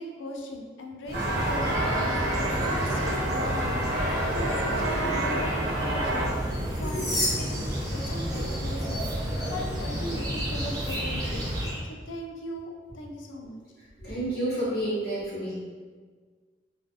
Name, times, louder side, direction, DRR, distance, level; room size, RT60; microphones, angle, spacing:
voice 1, 0.0-6.5 6.8-7.0 7.4-7.6 7.9-13.6, left 1 dB, 80° left, 2 dB, 0.4 m, -39 dB
sound 1, 1.0-11.8, equal, 20° right, 0.3 m, -31 dB
sound 2, 1.1-6.3, right 1 dB, 80° right, 0.6 m, -29 dB
sound 3, 6.5-8.5 8.9-9.1 10.7-11.0, left 1 dB, 20° left, 0.9 m, -33 dB
voice 2, 14.0-15.5, right 1 dB, 50° left, -10 dB, 0.9 m, -30 dB
2.4 x 2.1 x 2.5 m, 1.5 s
head